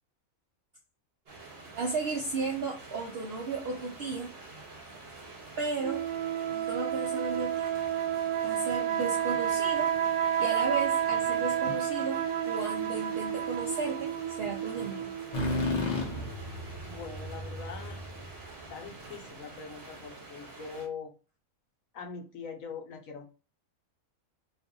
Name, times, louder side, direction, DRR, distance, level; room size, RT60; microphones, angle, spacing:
sound 1, 1.3-20.9, right 3 dB, 50° right, 1.0 m, -48 dB
voice 1, 1.7-4.3 4.8-4.9 5.6-6.0 6.5-7.7 8.4-9.9 10.4-15.1, right 4 dB, 65° right, 1 dB, 0.6 m, -34 dB
sound 2, 5.8-15.5, right 9 dB, 90° right, 1.1 m, -30 dB
sound 3, 15.3-19.1, left 1 dB, 40° left, 0.6 m, -34 dB
voice 2, 16.8-18.0 18.7-21.1 21.9-23.2, left 5 dB, 70° left, 4 dB, 1.1 m, -42 dB
2.6 x 2.5 x 3.7 m, 0.34 s
omnidirectional pair, 1.5 m